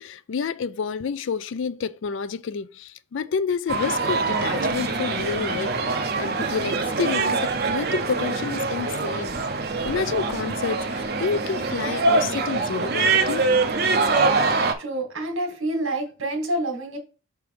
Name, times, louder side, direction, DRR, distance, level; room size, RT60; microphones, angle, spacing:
voice 1, 0.0-9.3 9.8-13.4, left 6 dB, 60° left, 0.3 m, -29 dB
sound 1, 3.7-14.7, right 3 dB, 45° right, 0.6 m, -24 dB
voice 2, 14.8-17.0, right 1 dB, 70° right, 1.8 m, -27 dB
6.0 x 3.5 x 4.7 m
head